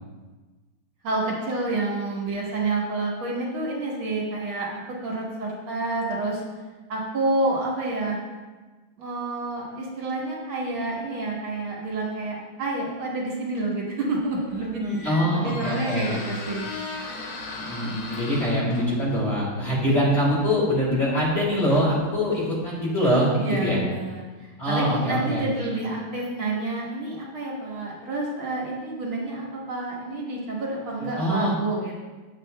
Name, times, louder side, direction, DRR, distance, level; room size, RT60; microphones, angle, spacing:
voice 1, 1.0-6.4 6.9-8.2 9.0-16.7 23.4-32.0, right 2 dB, 70° right, -3 dB, 2.0 m, -29 dB
Squeak, 14.2-23.0, left 3 dB, 75° left, 1.9 m, -39 dB
voice 2, 14.8-16.2 17.6-23.8 24.6-25.5 31.2-31.5, equal, 30° left, -7 dB, 2.1 m, -24 dB
8.2 x 7.7 x 2.2 m, 1.3 s
omnidirectional pair, 2.4 m